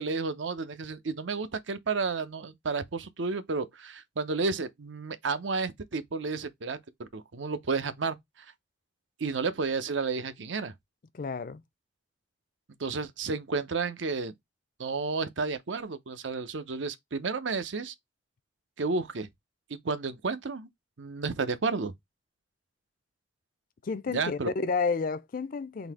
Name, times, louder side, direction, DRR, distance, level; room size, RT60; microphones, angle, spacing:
voice 1, 0.0-8.2 9.2-10.7 12.8-14.3 14.8-17.9 18.8-19.3 19.7-20.7 21.0-21.9 24.1-24.5, right 4 dB, 80° right, 0.7 m, -31 dB
voice 2, 11.1-11.6 23.8-25.9, left 4 dB, 45° left, 0.4 m, -31 dB
4.0 x 2.7 x 3.5 m
head